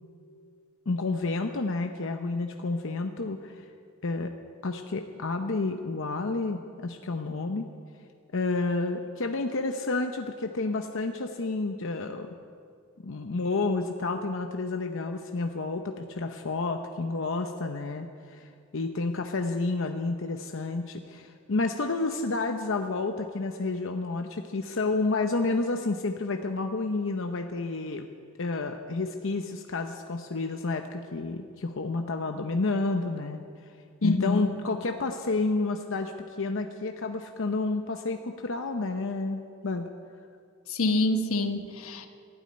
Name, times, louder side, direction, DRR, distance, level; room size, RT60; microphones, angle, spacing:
voice 1, 0.9-3.6 4.0-4.3 4.6-7.7 8.3-12.4 13.0-28.1 28.4-33.4 34.0-39.9, left 3 dB, 65° left, 5 dB, 0.8 m, -30 dB
voice 2, 34.0-34.5 40.7-42.1, left 2 dB, 90° left, 7 dB, 1.1 m, -26 dB
13.0 x 11.5 x 9.5 m, 2.3 s
head